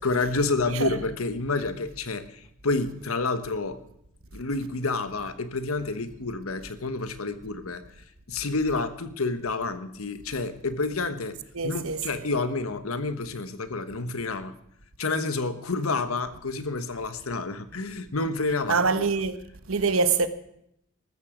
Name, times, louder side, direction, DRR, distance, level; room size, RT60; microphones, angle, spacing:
voice 1, 0.0-3.8 4.3-7.8 8.3-11.4 11.6-14.6 15.0-19.0, left 3 dB, 80° left, 1.3 m, -29 dB
voice 2, 11.5-12.0 18.7-19.4 19.7-20.3, right 4 dB, 75° right, 1.2 m, -24 dB
14.0 x 13.5 x 5.1 m
head